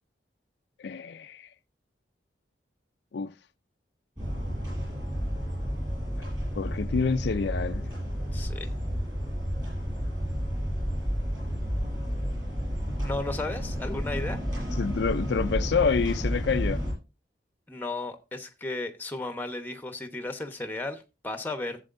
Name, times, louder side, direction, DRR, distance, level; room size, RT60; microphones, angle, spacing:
voice 1, 0.8-1.5 3.1-3.3 6.2-6.3 6.5-7.8 14.8-16.8, left 5 dB, 75° left, 0.4 m, -27 dB
ambient-tower, 4.2-16.9, equal, 25° right, 6.8 m, -31 dB
voice 2, 8.3-8.7 13.0-14.4 17.7-21.8, left 2 dB, 10° left, 0.9 m, -34 dB
14.0 x 7.6 x 2.6 m
head